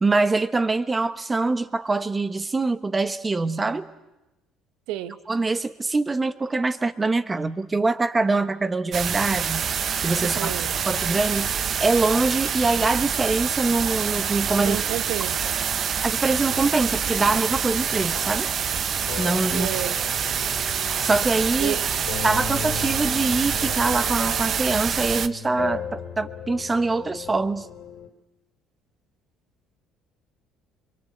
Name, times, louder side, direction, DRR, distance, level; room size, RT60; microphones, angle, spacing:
voice 1, 0.0-3.9 5.3-9.7 10.0-10.5 10.9-11.5 11.8-14.8 16.0-18.5 19.2-19.7 21.0-21.7 22.2-27.7, right 3 dB, 20° right, 13 dB, 1.2 m, -24 dB
voice 2, 4.9-5.2 10.2-10.9 14.6-15.6 19.5-20.0 21.6-21.8, right 13 dB, 85° right, 12 dB, 1.3 m, -31 dB
sound 1, 8.9-25.3, right 7 dB, 45° right, 1.0 m, -26 dB
sound 2, 16.4-28.1, left 6 dB, 85° left, 3.1 m, -38 dB
25.5 x 23.0 x 7.9 m, 0.99 s
cardioid pair, 105°, 0 cm